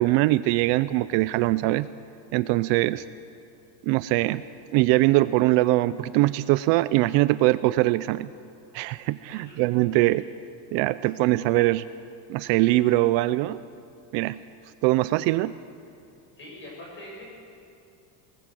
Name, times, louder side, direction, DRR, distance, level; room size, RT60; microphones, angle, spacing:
voice 1, 0.0-1.9 2.3-3.0 3.8-4.4 4.7-8.3 8.7-10.2 10.7-11.8 12.3-13.6 14.1-14.4 14.8-15.5, right 18 dB, 60° right, 15 dB, 0.6 m, -22 dB
voice 2, 16.3-17.2, left 1 dB, 25° left, -2 dB, 6.8 m, -43 dB
19.5 x 18.5 x 7.6 m, 2.5 s
cardioid pair, 165°, 49 cm